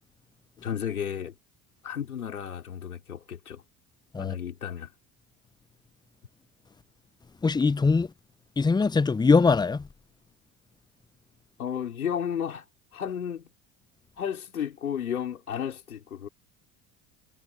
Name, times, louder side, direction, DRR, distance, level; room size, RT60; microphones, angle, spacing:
voice 1, 0.6-1.3 1.8-3.6 4.2-4.9 11.6-12.6 12.9-13.5 14.2-16.3, left 8 dB, 90° left, 4.7 m, -33 dB
voice 2, 7.4-8.1 8.6-9.8, left 4 dB, 10° left, 0.6 m, -22 dB
hypercardioid pair, 65°, 42 cm